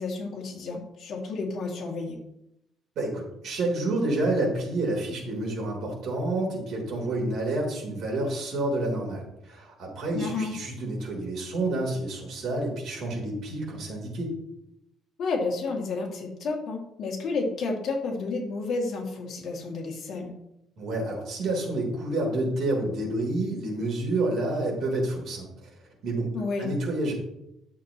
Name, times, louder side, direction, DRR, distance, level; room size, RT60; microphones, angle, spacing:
voice 1, 0.0-2.2 10.1-10.5 15.2-20.3 26.3-26.7, left 3 dB, 50° left, -1 dB, 2.3 m, -31 dB
voice 2, 3.0-14.3 20.8-25.7 26.0-26.3 26.6-27.1, right 2 dB, 55° right, -1 dB, 3.6 m, -29 dB
11.5 x 7.3 x 3.0 m, 0.84 s
cardioid pair, 155°, 0 cm